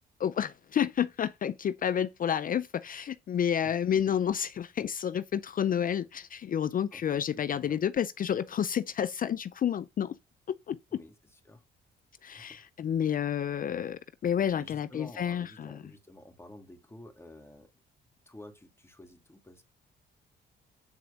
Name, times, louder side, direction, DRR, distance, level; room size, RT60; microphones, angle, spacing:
voice 1, 0.2-10.2 10.7-11.0 12.2-15.8, left 9 dB, 45° left, 0.5 m, -30 dB
voice 2, 3.3-3.8 6.9-7.8 10.9-11.6 12.3-12.7 14.6-17.7 18.3-19.6, left 1 dB, 10° left, 2.4 m, -51 dB
9.6 x 4.4 x 5.2 m
cardioid pair, 90°, 20 cm